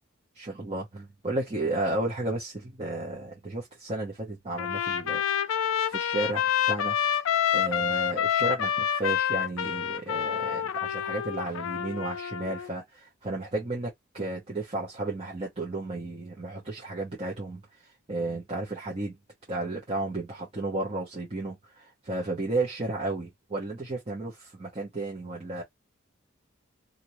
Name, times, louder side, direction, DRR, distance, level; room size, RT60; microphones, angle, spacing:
voice 1, 0.4-5.2 5.6-6.9 7.5-17.6 18.1-19.2 19.5-25.6, right 2 dB, 30° right, 0.9 m, -33 dB
Trumpet, 4.6-12.7, left 9 dB, 75° left, 0.4 m, -28 dB
2.7 x 2.6 x 3.0 m
head